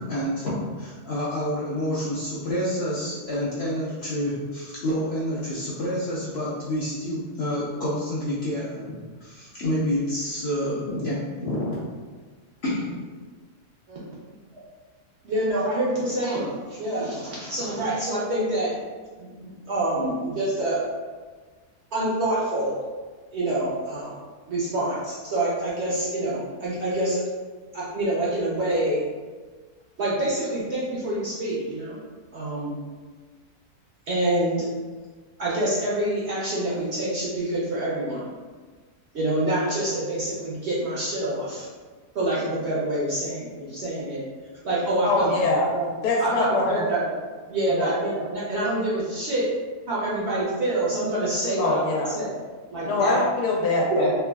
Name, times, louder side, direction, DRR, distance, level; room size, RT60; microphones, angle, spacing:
voice 1, 0.0-11.8 12.6-12.9, equal, 65° left, -8 dB, 0.6 m, -28 dB
voice 2, 15.2-18.7 19.2-20.8 21.9-22.7 23.3-24.1 24.5-27.2 27.7-29.0 30.0-32.0 32.3-32.8 34.1-34.7 35.4-38.2 39.1-41.7 42.1-44.2 44.6-45.3 45.7-45.9 46.2-47.1 47.5-49.4 49.9-52.3 52.7-53.2 53.9-54.1, right 1 dB, 60° right, -8 dB, 0.7 m, -26 dB
voice 3, 45.0-45.7 46.0-46.8 47.7-47.9 51.6-52.1 52.8-54.1, left 2 dB, 90° left, -2 dB, 1.2 m, -23 dB
3.3 x 2.2 x 2.2 m, 1.4 s
omnidirectional pair, 1.7 m